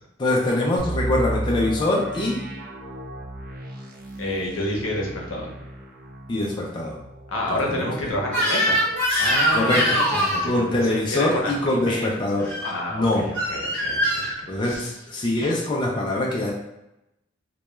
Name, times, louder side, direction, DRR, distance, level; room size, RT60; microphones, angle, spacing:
voice 1, 0.2-2.4 6.3-7.0 7.5-8.1 9.5-10.0 10.4-12.5 12.9-13.3 14.5-16.5, left 1 dB, 25° left, -2 dB, 0.3 m, -23 dB
sound 1, 0.8-10.5 10.8-10.9 11.5-11.7, right 1 dB, 45° right, 0.4 m, -35 dB
voice 2, 4.2-5.5 7.3-8.9 9.2-10.6 10.9-12.1 12.6-14.9, left 1 dB, 75° left, -1 dB, 0.6 m, -29 dB
Crying sobbing / Screech, 8.3-10.5 12.4-12.7 13.4-14.3, equal, 5° left, 0.7 m, -22 dB
2.2 x 2.1 x 2.9 m, 0.89 s
head